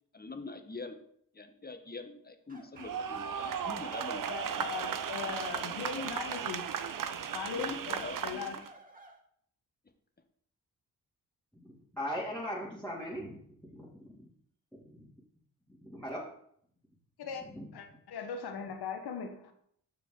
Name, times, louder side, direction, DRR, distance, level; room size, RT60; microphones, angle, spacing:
voice 1, 0.1-1.0 1.3-4.2 4.5-4.7 6.0-6.1 7.5-8.6, left 3 dB, 25° left, 7 dB, 1.2 m, -44 dB
sound 1, 2.5-9.2, right 2 dB, 20° right, 1.9 m, -54 dB
sound 2, 2.8-8.7, right 8 dB, 55° right, 0.7 m, -36 dB
voice 2, 4.3-6.7 7.3-8.6 17.2-17.4 17.7-19.5, left 6 dB, 75° left, 6 dB, 1.2 m, -39 dB
voice 3, 11.6-14.3 14.7-15.1 15.8-16.2 17.5-17.7, equal, 5° left, -8 dB, 2.5 m, -40 dB
7.4 x 5.9 x 3.8 m, 0.66 s
supercardioid pair, 45°, 39 cm